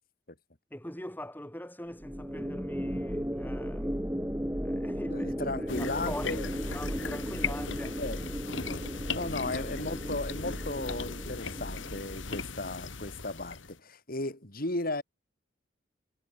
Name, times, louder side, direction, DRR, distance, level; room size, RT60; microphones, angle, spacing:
voice 1, 0.7-4.1 4.6-8.0 9.6-9.7, left 1 dB, 10° left, 5.5 m, -43 dB
sound 1, 2.0-12.4, equal, 10° right, 6.4 m, -36 dB
voice 2, 5.1-6.5 6.8-7.3 8.0-8.2 8.7-8.8 9.1-15.0, left 2 dB, 50° left, 4.5 m, -36 dB
sound 2, 5.7-13.8, left 4 dB, 80° left, 2.6 m, -38 dB
head